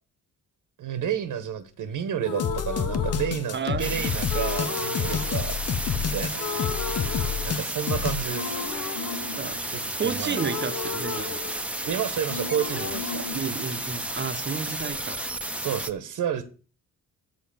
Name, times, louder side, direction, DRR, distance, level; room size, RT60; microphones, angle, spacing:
voice 1, 0.8-5.6 6.0-6.4 7.4-8.6 9.7-10.5 11.8-13.2 15.6-16.4, right 9 dB, 70° right, 1.2 m, -30 dB
sound 1, 2.2-3.9 4.3-6.1 6.3-7.9 8.3-12.0 12.3-14.3, left 5 dB, 75° left, 1.6 m, -35 dB
sound 2, 2.4-8.2, left 7 dB, 45° left, 0.7 m, -29 dB
voice 2, 3.5-4.2 5.1-5.2 9.4-9.6 10.0-11.3 13.3-15.2, right 6 dB, 35° right, 0.9 m, -31 dB
sound 3, 3.8-15.9, right 1 dB, 5° right, 0.8 m, -32 dB
7.6 x 5.4 x 7.3 m
cardioid pair, 100°, 33 cm